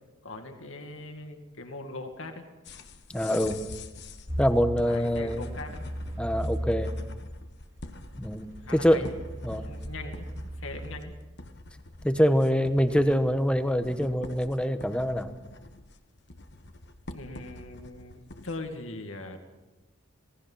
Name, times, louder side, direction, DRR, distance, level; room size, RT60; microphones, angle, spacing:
voice 1, 0.2-2.4 3.2-3.4 4.8-5.8 8.6-9.2 9.4-10.3 10.6-11.1 17.1-19.4, left 2 dB, 70° left, 4 dB, 2.2 m, -41 dB
sound 1, 2.6-18.7, left 2 dB, 55° left, 1.3 m, -46 dB
voice 2, 3.1-3.5 4.4-5.5 6.2-6.9 8.2-9.1 9.4-9.7 12.0-15.3, equal, 5° left, 9 dB, 1.1 m, -25 dB
sound 2, 4.3-7.2 7.8-11.0, equal, 30° right, 3.6 m, -36 dB
27.0 x 18.5 x 5.7 m, 1.1 s
head